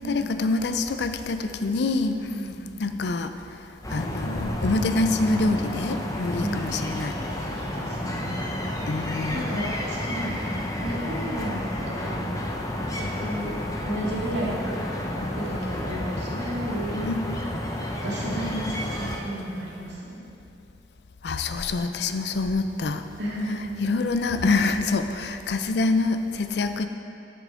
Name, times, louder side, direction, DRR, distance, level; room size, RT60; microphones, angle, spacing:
voice 1, 0.0-2.2 2.8-3.3 3.9-7.1 8.9-9.6 17.1-17.4 21.2-23.0 23.8-26.9, left 3 dB, 65° left, 8 dB, 0.5 m, -26 dB
voice 2, 2.3-2.9 6.4-6.6 7.5-8.4 9.3-10.4 10.8-12.4 13.0-13.6 13.8-14.6 15.2-17.1 18.0-20.2 23.2-23.8, right 1 dB, 75° right, -5 dB, 2.0 m, -33 dB
sound 1, 3.8-19.2, left 1 dB, 20° left, 0.7 m, -31 dB
11.5 x 6.8 x 3.7 m, 2.7 s
head